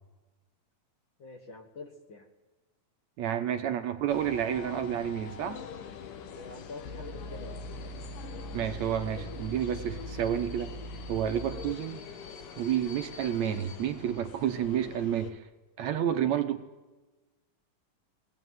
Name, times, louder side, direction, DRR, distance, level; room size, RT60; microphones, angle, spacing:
voice 1, 1.2-2.3 6.3-7.6, left 3 dB, 45° left, 4 dB, 1.9 m, -46 dB
voice 2, 3.2-5.6 8.5-10.7 11.1-12.0 12.6-15.5 15.8-16.6, right 9 dB, 70° right, 8 dB, 2.0 m, -30 dB
sound 1, 4.1-15.3, left 6 dB, 85° left, 3.1 m, -45 dB
sound 2, 6.9-11.7, equal, 65° left, 2.2 m, -41 dB
21.0 x 17.5 x 9.4 m, 1.2 s
omnidirectional pair, 3.7 m